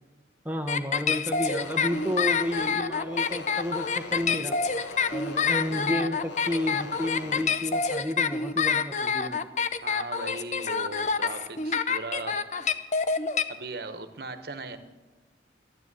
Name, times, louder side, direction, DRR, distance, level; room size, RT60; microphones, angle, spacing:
voice 1, 0.4-4.6 5.1-9.5, left 1 dB, 10° right, 4 dB, 0.7 m, -31 dB
sound 1, 0.7-13.4, left 5 dB, 40° left, 0.6 m, -27 dB
sound 2, 1.4-7.5, left 3 dB, 85° left, 1.0 m, -42 dB
voice 2, 9.8-12.6 13.5-14.8, right 3 dB, 55° right, 9 dB, 1.1 m, -38 dB
13.5 x 10.0 x 8.2 m, 1.2 s
head